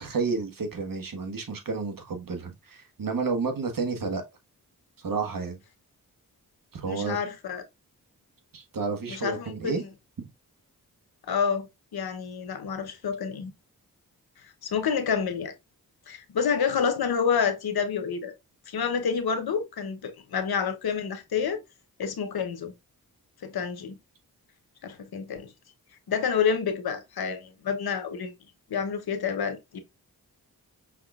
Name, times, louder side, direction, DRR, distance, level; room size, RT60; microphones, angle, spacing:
voice 1, 0.0-4.2 5.0-5.6 6.7-7.2 8.5-9.8, right 4 dB, 65° right, 1.4 m, -31 dB
voice 2, 6.9-7.6 9.1-9.8 11.3-13.5 14.6-15.5 16.1-18.3 18.7-21.6 22.0-22.7 23.4-24.0 24.8-25.5 26.1-28.3 28.7-29.8, left 6 dB, 85° left, 0.9 m, -28 dB
5.7 x 3.5 x 2.3 m
cardioid pair, 60°, 36 cm